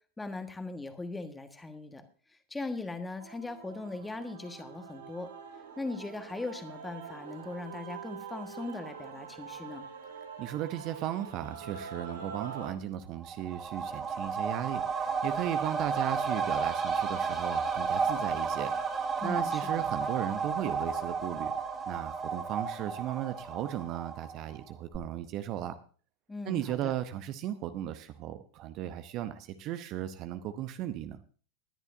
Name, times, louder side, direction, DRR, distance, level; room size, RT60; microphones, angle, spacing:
voice 1, 0.2-2.0 2.3-5.3 5.8-9.8 19.2-19.8 26.3-26.9, left 3 dB, 10° left, 8 dB, 1.4 m, -39 dB
Male singing / Female singing / Musical instrument, 3.2-12.7, right 6 dB, 65° right, 2.7 m, -45 dB
voice 2, 10.4-18.7 19.2-21.5 21.9-25.8 26.4-31.2, right 12 dB, 40° right, 11 dB, 0.8 m, -36 dB
sound 1, 13.2-24.6 24.9-25.0, right 5 dB, 20° right, 2.7 m, -32 dB
19.5 x 11.0 x 2.7 m, 0.41 s
figure-of-eight pair, 90°, 0 cm